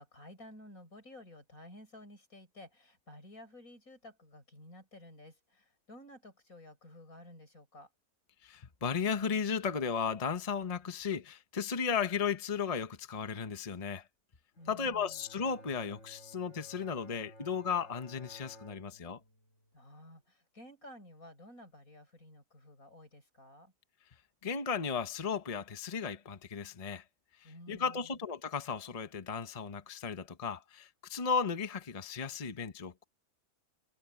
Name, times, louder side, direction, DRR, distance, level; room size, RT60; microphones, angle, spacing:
voice 1, 0.0-7.9 14.6-15.2 19.7-23.7 27.4-28.2, left 1 dB, 80° left, 6.5 m, -53 dB
voice 2, 8.4-14.1 14.7-19.2 24.4-27.0 27.4-33.0, left 6 dB, 30° left, 1.0 m, -35 dB
Bowed string instrument, 14.5-19.8, equal, 60° left, 6.5 m, -56 dB
omnidirectional pair, 1.5 m